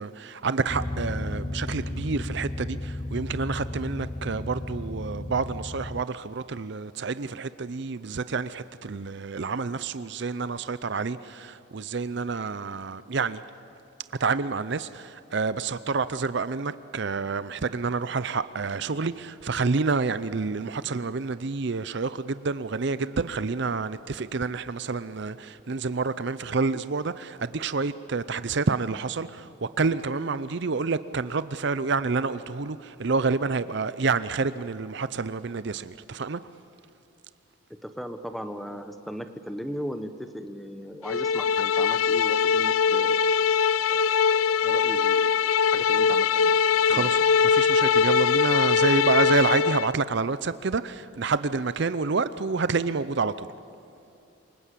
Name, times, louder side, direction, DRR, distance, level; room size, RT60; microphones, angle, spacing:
voice 1, 0.0-13.4 14.2-36.4 46.9-47.2 47.4-53.5, right 4 dB, 55° right, 0.6 m, -28 dB
sound 1, 0.7-6.0, left 1 dB, 20° left, 0.5 m, -34 dB
voice 2, 37.7-43.3 43.9-45.4 45.7-46.5 46.9-47.1, equal, ahead, 1.2 m, -37 dB
sound 2, 41.1-49.9, left 6 dB, 80° left, 0.5 m, -22 dB
28.0 x 24.5 x 8.4 m
head